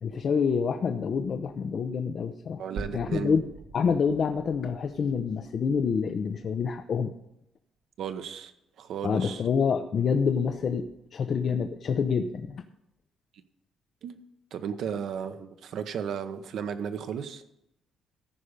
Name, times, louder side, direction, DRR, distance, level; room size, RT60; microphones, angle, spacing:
voice 1, 0.0-2.6 2.9-3.4 3.7-7.1 9.0-12.6, left 6 dB, 50° left, 7 dB, 0.6 m, -27 dB
voice 2, 2.6-3.4 8.0-8.5 8.8-9.4 14.0-17.4, right 7 dB, 70° right, 9 dB, 0.9 m, -35 dB
sound 1, 2.8-7.0, right 3 dB, 90° right, 1.9 m, -44 dB
14.0 x 5.2 x 6.6 m, 0.81 s
cardioid pair, 105°, 0 cm